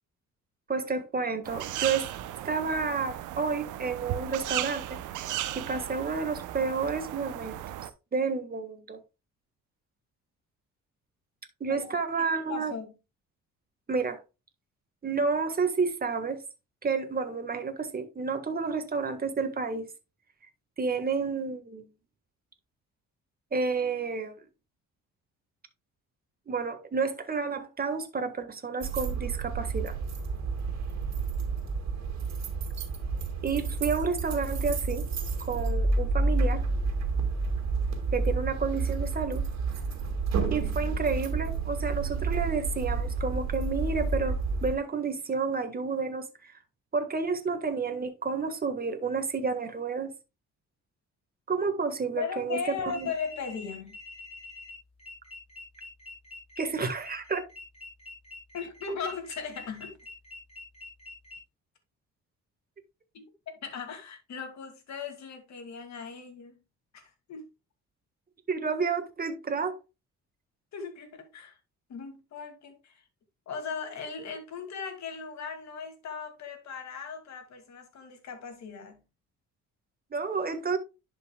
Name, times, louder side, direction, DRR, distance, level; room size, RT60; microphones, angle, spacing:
voice 1, 0.7-2.0 2.4-5.2 5.5-7.6 8.1-9.0 11.6-12.7 13.9-14.2 15.0-16.4 16.8-19.9 20.8-21.9 23.5-24.3 26.5-29.9 33.4-35.0 35.4-36.6 38.1-39.4 40.5-46.5 46.9-50.1 51.5-53.1 56.6-57.4 68.5-69.8 80.1-80.8, right 5 dB, 30° right, 1.5 m, -30 dB
sound 1, 1.4-7.9, right 13 dB, 90° right, 0.7 m, -36 dB
voice 2, 11.7-12.9 52.2-54.0 58.5-60.0 63.1-66.6 66.9-67.0 67.3-67.5 70.7-71.6 71.9-73.0 73.5-79.0, left 5 dB, 65° left, 2.3 m, -38 dB
sound 2, 28.8-44.8, right 3 dB, 60° right, 2.1 m, -30 dB
sound 3, 52.9-61.4, left 3 dB, 20° left, 5.0 m, -45 dB
11.0 x 5.4 x 2.3 m
cardioid pair, 90°, 30 cm